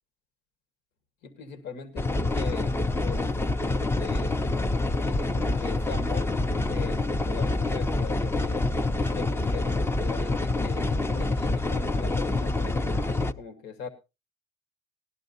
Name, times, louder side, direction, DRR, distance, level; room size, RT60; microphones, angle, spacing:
voice 1, 1.2-4.4 4.8-6.4 6.6-8.6 9.0-13.9, left 6 dB, 85° left, 9 dB, 1.5 m, -41 dB
sound 1, 2.0-13.3, left 2 dB, 15° left, 0.5 m, -26 dB
18.5 x 11.5 x 2.6 m, 0.26 s
cardioid pair, 110°, 17 cm